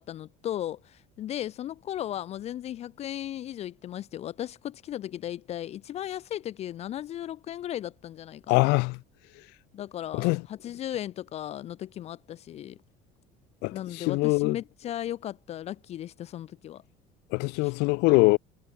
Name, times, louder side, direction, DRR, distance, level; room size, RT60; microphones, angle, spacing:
voice 1, 0.0-8.6 9.7-12.8 13.7-16.8 17.6-17.7, left 12 dB, 35° left, 1.0 m, -36 dB
voice 2, 8.5-9.0 10.2-10.4 13.6-14.6 17.3-18.4, left 26 dB, 70° left, 0.5 m, -23 dB
cardioid pair, 175°, 18 cm